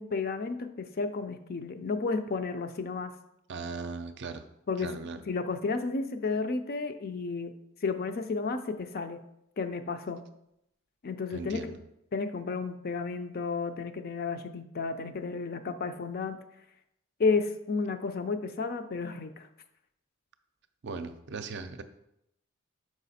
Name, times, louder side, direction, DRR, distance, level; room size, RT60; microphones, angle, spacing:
voice 1, 0.0-3.1 4.7-5.0 5.3-7.5 7.8-9.2 9.6-10.2 11.0-11.7 12.1-16.4 17.2-19.5, left 4 dB, 45° left, 8 dB, 0.5 m, -32 dB
voice 2, 3.5-4.4 4.8-5.2 11.3-11.8 20.8-21.8, right 4 dB, 55° right, 9 dB, 0.5 m, -38 dB
5.8 x 4.9 x 4.1 m, 0.81 s
head